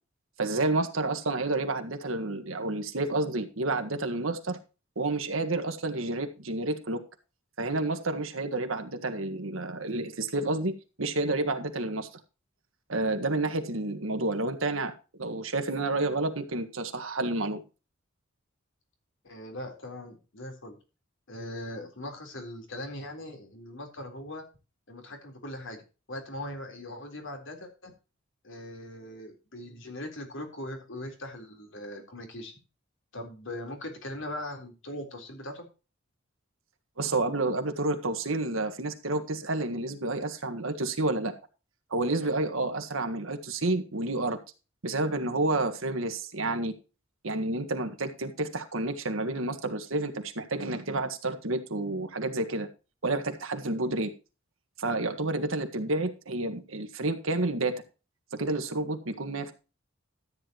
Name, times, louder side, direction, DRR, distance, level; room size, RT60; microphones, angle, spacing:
voice 1, 0.4-4.6 4.9-7.0 7.6-12.1 12.9-14.9 15.2-17.6 37.0-41.3 41.9-44.4 44.8-46.7 47.2-52.7 53.0-54.1 54.8-57.8 58.4-59.5, right 2 dB, 75° right, 7 dB, 1.7 m, -30 dB
voice 2, 19.2-20.8 21.3-24.5 24.9-27.9 28.4-32.5 33.1-35.7, left 1 dB, 65° left, 4 dB, 3.9 m, -40 dB
13.5 x 9.8 x 3.0 m, 0.32 s
head